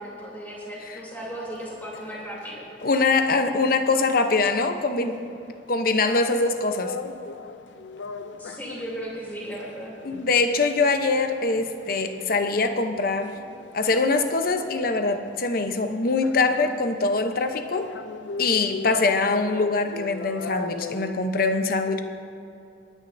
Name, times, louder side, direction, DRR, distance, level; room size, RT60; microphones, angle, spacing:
voice 1, 0.0-2.9 8.4-9.9, equal, 10° left, -5 dB, 3.0 m, -36 dB
sound 1, 1.2-21.1, left 5 dB, 85° left, 0.5 m, -40 dB
voice 2, 2.8-5.2 5.7-6.9 10.0-13.3 13.7-17.9 18.4-22.0, left 3 dB, 55° left, 7 dB, 0.8 m, -23 dB
27.0 x 9.9 x 2.6 m, 2.7 s
head